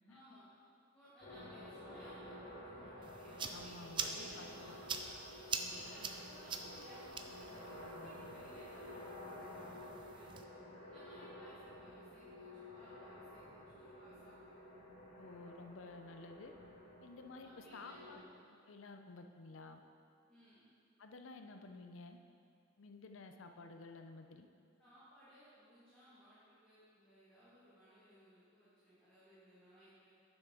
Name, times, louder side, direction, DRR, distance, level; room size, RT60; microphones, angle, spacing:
voice 1, 0.1-0.5 0.9-5.2 5.6-10.3 10.8-14.5 17.4-18.3 20.3-20.7 24.8-30.1, equal, 5° left, -14 dB, 2.0 m, -61 dB
sound 1, 1.2-18.2, left 1 dB, 55° left, 2.1 m, -52 dB
sound 2, 3.0-10.4, right 5 dB, 25° right, 0.4 m, -45 dB
voice 2, 3.5-4.8 5.6-5.7 15.2-16.5 17.0-18.2 18.7-19.8 21.0-22.2 22.8-24.5, left 3 dB, 85° left, 6 dB, 0.6 m, -53 dB
9.7 x 6.2 x 3.8 m, 2.4 s
head